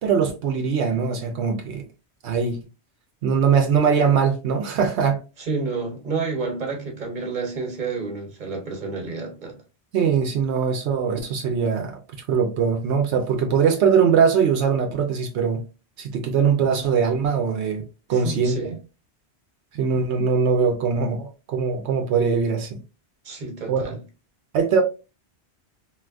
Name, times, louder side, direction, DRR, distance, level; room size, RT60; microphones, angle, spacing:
voice 1, 0.0-1.8 2.2-2.6 3.2-5.2 9.9-12.0 12.3-15.6 16.0-18.7 19.7-22.8 23.7-23.8 24.5-24.8, right 6 dB, 85° right, 0.9 m, -21 dB
voice 2, 5.4-9.6 18.1-18.7 23.2-24.0, right 4 dB, 45° right, 1.1 m, -30 dB
3.3 x 2.5 x 2.4 m
omnidirectional pair, 1.1 m